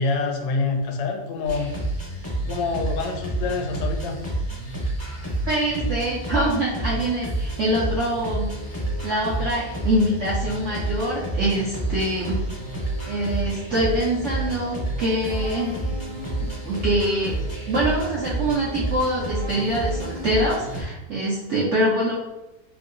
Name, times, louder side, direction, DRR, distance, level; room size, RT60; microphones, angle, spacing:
voice 1, 0.0-1.7 2.5-4.2, left 4 dB, 90° left, 2 dB, 1.2 m, -26 dB
techno live loop, 1.4-20.8, right 1 dB, 20° left, 0.6 m, -29 dB
voice 2, 5.5-8.5 9.0-12.4 13.1-15.8 16.4-17.4 17.7-22.2, right 1 dB, 70° right, -5 dB, 0.7 m, -24 dB
3.1 x 2.6 x 2.5 m, 0.96 s
omnidirectional pair, 1.9 m